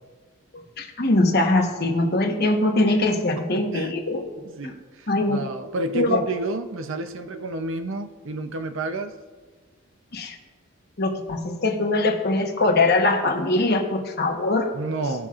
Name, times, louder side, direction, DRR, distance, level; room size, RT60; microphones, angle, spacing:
voice 1, 0.5-4.3 5.1-5.4 5.9-6.2 10.1-10.3 11.0-14.7, left 2 dB, 45° left, 2 dB, 1.1 m, -22 dB
voice 2, 3.4-3.9 4.4-9.1 14.7-15.3, right 2 dB, 60° right, 9 dB, 0.6 m, -30 dB
17.5 x 5.8 x 2.4 m, 1.4 s
head